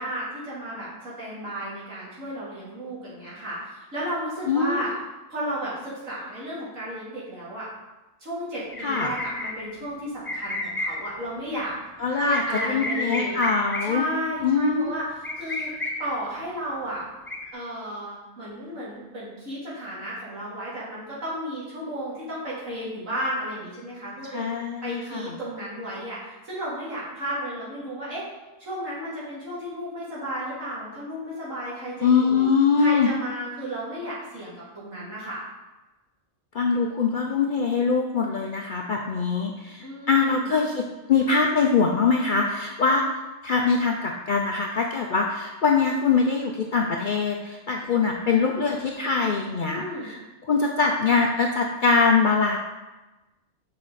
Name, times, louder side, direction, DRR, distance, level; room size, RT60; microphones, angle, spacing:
voice 1, 0.0-4.9 5.3-7.7 8.2-11.7 12.1-13.4 13.8-15.0 15.4-15.7 16.0-17.0 17.5-24.5 24.8-28.3 28.6-32.5 32.8-35.4 39.8-40.5 49.6-50.1, equal, 75° right, -8 dB, 3.0 m, -33 dB
voice 2, 4.5-4.9 8.8-9.1 12.0-12.4 12.7-14.0 14.4-14.9 24.3-25.3 32.0-33.1 36.5-43.0 43.4-50.2 50.5-52.6, left 5 dB, 60° left, 1 dB, 0.5 m, -23 dB
sound 1, 8.7-9.5 10.2-11.0 12.3-13.8 15.2-15.9 17.3-17.5, left 2 dB, 10° left, 0.6 m, -31 dB
6.7 x 4.9 x 4.1 m, 1.1 s
omnidirectional pair, 1.4 m